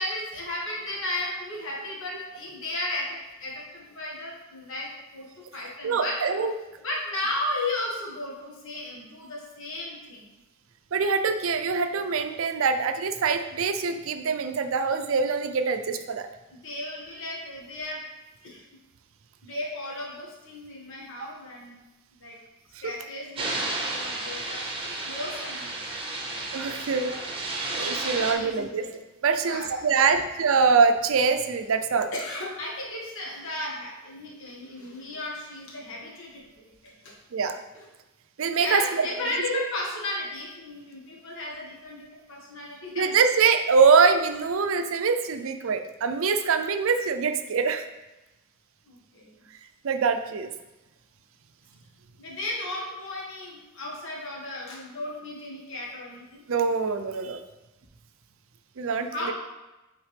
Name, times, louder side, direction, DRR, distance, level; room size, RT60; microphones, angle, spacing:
voice 1, 0.0-6.2 6.8-10.3 16.5-18.0 18.4-18.6 19.4-21.8 22.1-22.4 22.8-25.8 26.2-26.3 28.3-28.9 29.4-30.2 32.1-37.1 38.6-43.2 48.8-49.3 52.2-56.4 58.8-59.3, left 1 dB, 65° left, -3 dB, 1.4 m, -35 dB
voice 2, 5.8-6.5 10.9-16.3 26.5-27.1 27.5-32.1 37.3-37.6 38.4-39.0 39.5-39.6 43.0-47.9 49.8-50.5 56.5-57.4 58.8-59.3, right 5 dB, 70° right, 8 dB, 0.5 m, -24 dB
sound 1, 23.4-28.3, right 2 dB, 25° right, 0.8 m, -32 dB
8.0 x 3.6 x 3.3 m, 1.0 s
head